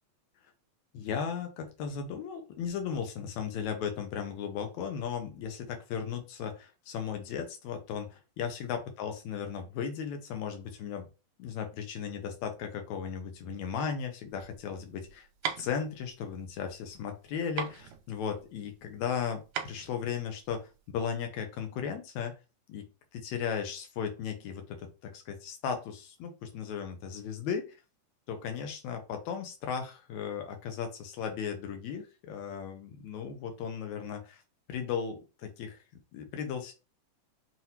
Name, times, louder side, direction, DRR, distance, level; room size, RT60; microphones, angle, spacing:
voice 1, 0.9-11.1 11.4-15.3 15.6-22.3 22.7-22.9 23.1-27.8 28.3-34.4 34.7-35.8 36.1-36.7, left 7 dB, 75° left, 5 dB, 1.8 m, -36 dB
sound 1, 14.3-20.9, right 8 dB, 80° right, 2.1 m, -40 dB
5.8 x 2.6 x 2.8 m, 0.30 s
omnidirectional pair, 3.8 m